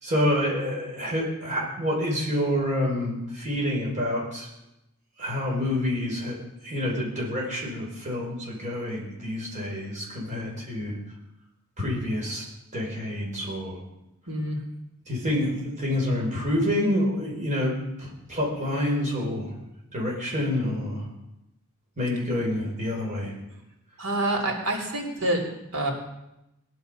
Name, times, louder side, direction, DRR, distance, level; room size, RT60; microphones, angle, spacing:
voice 1, 0.0-4.5 5.2-6.4 6.6-11.0 11.8-12.4 12.7-13.8 15.1-19.5 19.9-21.0 22.0-23.3, left 1 dB, 35° right, -3 dB, 5.3 m, -27 dB
voice 2, 14.3-14.6 24.0-25.4 25.7-25.9, right 1 dB, 90° right, 0 dB, 3.6 m, -27 dB
19.0 x 11.0 x 5.4 m, 0.90 s
head